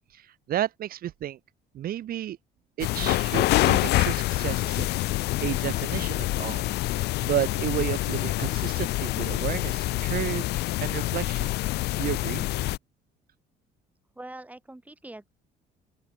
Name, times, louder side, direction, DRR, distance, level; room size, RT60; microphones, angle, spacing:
voice 1, 0.1-1.4 1.7-2.4 2.8-6.7 7.2-11.5 12.0-12.5, right 12 dB, 60° right, 2.4 m, -32 dB
sound 1, 2.8-12.8, left 18 dB, 80° left, 1.0 m, -26 dB
voice 2, 14.2-15.3, right 1 dB, 10° right, 7.1 m, -43 dB
open air
cardioid pair, 110°, 17 cm